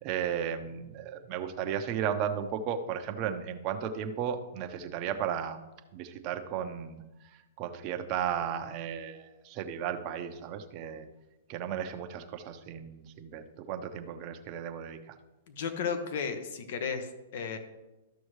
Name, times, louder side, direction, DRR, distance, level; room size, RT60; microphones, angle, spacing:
voice 1, 0.0-5.6 5.9-7.0 7.3-11.1 11.5-15.2, right 8 dB, 40° right, 6 dB, 0.9 m, -35 dB
voice 2, 15.5-17.6, left 6 dB, 60° left, 7 dB, 1.3 m, -34 dB
13.5 x 6.2 x 3.2 m, 1.0 s
hypercardioid pair, 130°, 0 cm